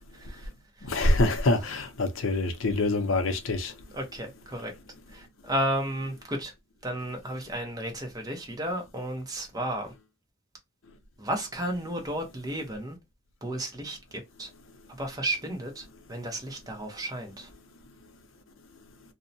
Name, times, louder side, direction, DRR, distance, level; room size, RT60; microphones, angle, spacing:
voice 1, 0.1-0.5 0.8-1.1 1.6-1.7 3.9-4.7 5.1-6.5 6.8-9.9 11.2-13.0 13.4-14.5 15.0-17.5, right 1 dB, 20° right, 0.7 m, -33 dB
voice 2, 0.9-3.7, left 2 dB, 75° left, 0.6 m, -25 dB
2.7 x 2.1 x 2.5 m
head